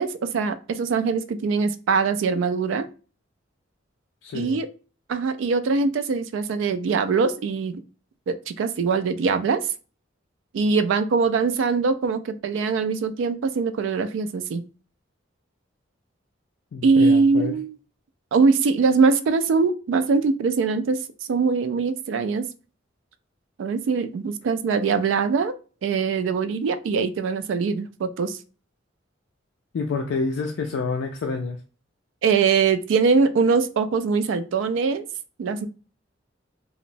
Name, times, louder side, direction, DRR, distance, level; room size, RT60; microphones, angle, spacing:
voice 1, 0.0-2.9 4.3-4.7 5.1-7.8 8.3-9.7 10.5-14.6 16.8-17.8 18.3-21.0 21.3-22.5 23.6-25.5 25.8-28.4 32.2-35.0 35.4-35.7, right 4 dB, 75° right, 10 dB, 0.3 m, -22 dB
voice 2, 4.2-4.6 16.7-17.5 29.7-31.6, left 4 dB, 70° left, 3 dB, 0.3 m, -28 dB
2.9 x 2.0 x 2.6 m, 0.36 s
head